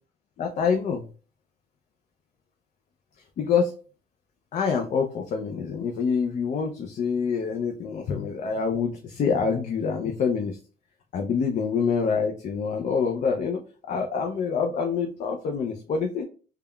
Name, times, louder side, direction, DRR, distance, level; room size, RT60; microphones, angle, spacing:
voice 1, 0.4-1.1 3.4-3.7 4.5-10.6 11.1-13.6 13.9-16.2, left 6 dB, 45° left, 2 dB, 0.4 m, -26 dB
3.3 x 2.2 x 2.2 m, 0.37 s
cardioid pair, 110°, 17 cm